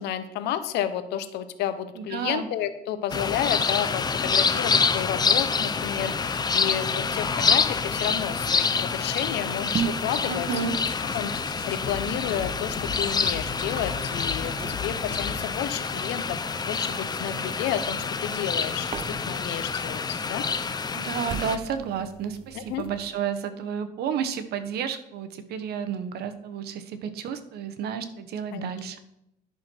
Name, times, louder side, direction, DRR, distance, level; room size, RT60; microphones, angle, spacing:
voice 1, 0.0-10.5 11.1-20.4 22.5-22.8 28.5-28.7, left 10 dB, 85° left, 11 dB, 0.9 m, -31 dB
voice 2, 1.9-2.5 10.3-10.7 20.9-29.0, right 7 dB, 70° right, 10 dB, 1.0 m, -31 dB
sound 1, 3.1-21.6, left 5 dB, 25° left, 0.6 m, -27 dB
sound 2, 7.0-15.5, left 6 dB, 65° left, 1.6 m, -40 dB
sound 3, 9.3-23.1, right 7 dB, 35° right, 0.4 m, -40 dB
11.0 x 6.2 x 4.4 m, 0.82 s
cardioid pair, 110°, 17 cm